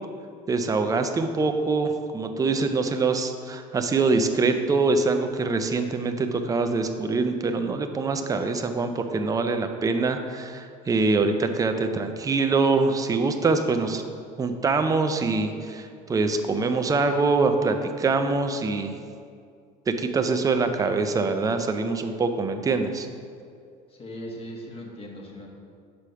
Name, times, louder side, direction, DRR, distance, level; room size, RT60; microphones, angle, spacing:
voice 1, 0.5-14.0 14.4-19.0 19.9-23.1, right 3 dB, 20° right, 6 dB, 0.5 m, -24 dB
voice 2, 23.9-25.5, equal, 30° left, 0 dB, 1.3 m, -39 dB
5.1 x 4.9 x 5.7 m, 2.3 s
supercardioid pair, 100°, 19 cm